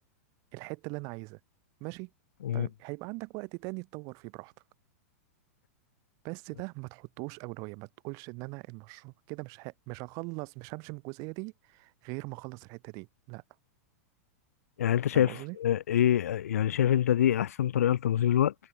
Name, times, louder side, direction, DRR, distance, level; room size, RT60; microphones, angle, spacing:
voice 1, 0.5-1.4 1.8-2.1 2.5-4.5 6.2-13.4 15.1-15.6, right 29 dB, 45° right, 0.9 m, -41 dB
voice 2, 14.8-18.5, left 10 dB, 90° left, 0.4 m, -25 dB
hypercardioid pair, 125°, 8 cm